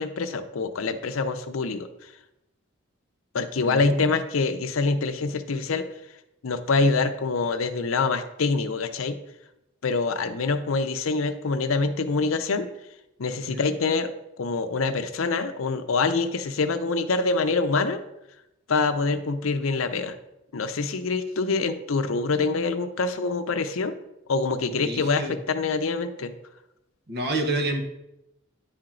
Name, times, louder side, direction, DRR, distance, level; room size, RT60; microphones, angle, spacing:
voice 1, 0.0-2.1 3.3-5.9 6.4-9.2 9.8-12.7 13.2-14.1 14.4-18.0 18.7-20.1 20.5-23.9 24.3-26.3, left 4 dB, 80° left, 10 dB, 0.6 m, -25 dB
voice 2, 3.6-4.1 13.5-13.7 24.8-25.4 27.1-27.8, right 2 dB, 55° right, 4 dB, 1.1 m, -28 dB
10.0 x 4.4 x 3.8 m, 0.88 s
head